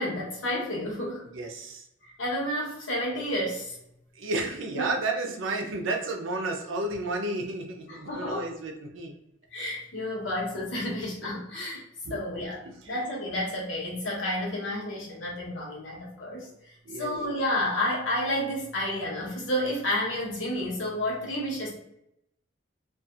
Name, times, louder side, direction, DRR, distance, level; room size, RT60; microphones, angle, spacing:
voice 1, 0.0-1.3 2.0-3.8 4.7-4.9 7.9-8.5 9.5-11.8 12.1-21.7, left 1 dB, 70° left, -4 dB, 1.0 m, -31 dB
voice 2, 1.3-1.8 4.2-9.1 12.0-12.2 16.8-17.1, right 2 dB, 85° right, 2 dB, 0.6 m, -32 dB
2.7 x 2.4 x 2.4 m, 0.79 s
head